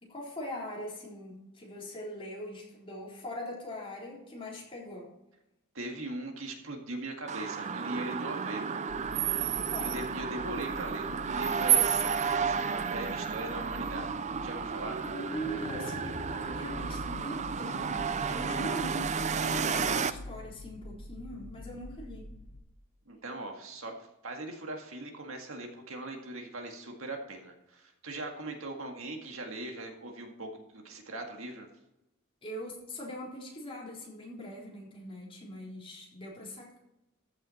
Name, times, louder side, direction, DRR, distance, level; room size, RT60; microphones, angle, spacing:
voice 1, 0.0-5.1 9.7-10.0 15.0-22.3 32.4-36.8, equal, 25° left, -4 dB, 3.8 m, -41 dB
voice 2, 5.7-8.8 9.8-15.0 23.1-24.0 24.2-31.7, right 2 dB, 65° right, 2 dB, 2.0 m, -40 dB
sound 1, 7.3-20.1, right 6 dB, 30° right, 0.5 m, -31 dB
sound 2, 8.9-22.6, left 2 dB, 80° left, 1.3 m, -46 dB
14.5 x 7.2 x 4.4 m, 0.90 s
head